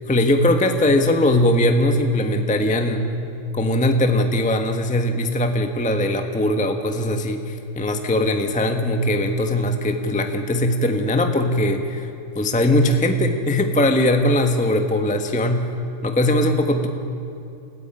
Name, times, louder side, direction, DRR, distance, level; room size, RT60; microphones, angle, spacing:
voice 1, 0.1-3.1 3.5-12.1 12.3-15.6 16.0-16.9, left 1 dB, 5° left, 5 dB, 0.9 m, -20 dB
29.0 x 15.5 x 8.9 m, 2.8 s
omnidirectional pair, 2.4 m